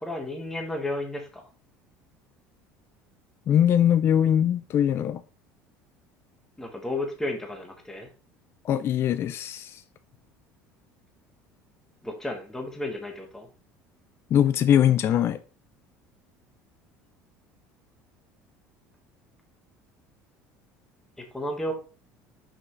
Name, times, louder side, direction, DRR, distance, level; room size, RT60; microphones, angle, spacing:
voice 1, 0.0-1.5 6.6-8.1 12.0-13.5 21.2-21.7, left 1 dB, 5° left, 1.6 m, -33 dB
voice 2, 3.5-5.2 8.6-9.8 14.3-15.4, left 10 dB, 45° left, 0.5 m, -22 dB
5.9 x 5.5 x 3.2 m
supercardioid pair, 110°, 6 cm